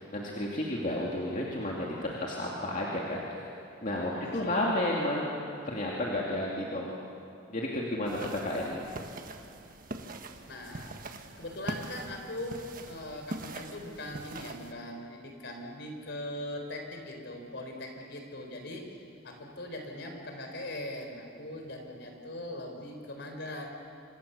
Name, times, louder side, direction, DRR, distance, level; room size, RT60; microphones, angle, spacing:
voice 1, 0.0-3.5 3.8-5.3 5.7-6.9 7.5-8.8, left 1 dB, 40° left, -3 dB, 2.7 m, -32 dB
voice 2, 4.1-4.7 8.2-8.8 10.4-10.9 11.4-12.6 12.9-18.8 19.2-23.7, left 1 dB, 55° left, 3 dB, 4.3 m, -41 dB
sound 1, 8.1-14.7, right 2 dB, 45° right, 1.5 m, -43 dB
26.5 x 26.0 x 7.0 m, 2.6 s
head